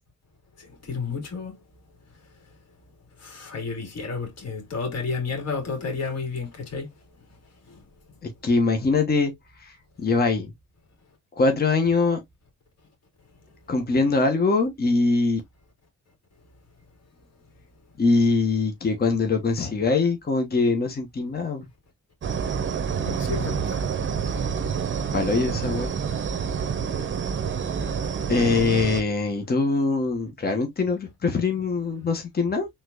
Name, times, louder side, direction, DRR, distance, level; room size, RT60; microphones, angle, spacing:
voice 1, 0.6-1.5 3.2-6.9 7.7-7.8 23.0-23.8, left 4 dB, 55° left, 2.8 m, -31 dB
voice 2, 8.2-9.3 9.6-9.7 10.0-10.5 11.3-12.2 13.7-15.4 18.0-21.7 25.1-25.9 28.3-32.7, left 3 dB, 30° left, 1.2 m, -23 dB
sound 1, 22.2-29.0, right 6 dB, 40° right, 0.9 m, -28 dB
4.4 x 3.9 x 2.5 m
cardioid pair, 90°, 30 cm